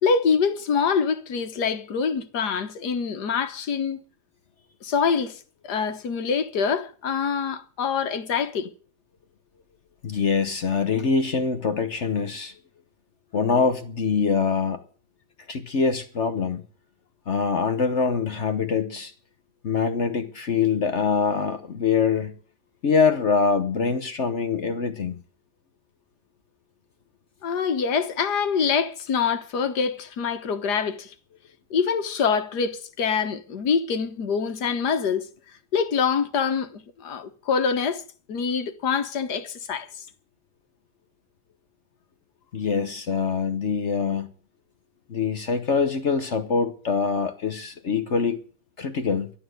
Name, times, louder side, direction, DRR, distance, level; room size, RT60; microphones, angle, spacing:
voice 1, 0.0-4.0 4.8-8.7 27.4-31.1 31.7-35.3 35.7-38.0 38.3-40.1, left 6 dB, 85° left, 1.8 m, -25 dB
voice 2, 10.0-12.5 13.3-14.8 15.5-16.6 17.3-19.1 19.6-22.3 22.8-25.2 42.5-44.3 45.1-48.4 48.8-49.3, left 5 dB, 50° left, 1.2 m, -24 dB
12.0 x 11.5 x 7.9 m
omnidirectional pair, 1.7 m